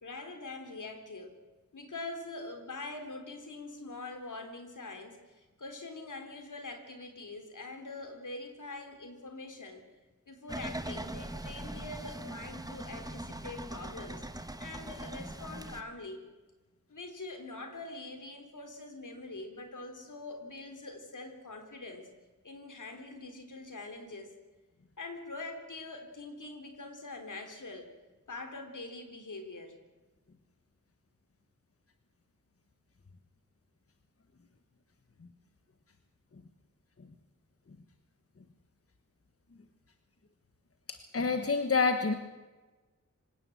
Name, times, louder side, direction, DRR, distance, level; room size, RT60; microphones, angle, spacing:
voice 1, 0.0-1.4 1.7-9.8 10.3-14.3 14.6-16.2 16.9-22.1 22.4-24.3 25.0-27.9 28.3-29.8, left 2 dB, 80° left, 6 dB, 3.6 m, -44 dB
sound 1, 10.5-15.8, right 1 dB, 10° right, 1.4 m, -41 dB
voice 2, 40.9-42.1, left 4 dB, 50° left, 7 dB, 1.4 m, -28 dB
25.5 x 17.0 x 7.8 m, 1.2 s
wide cardioid pair, 80°, 31 cm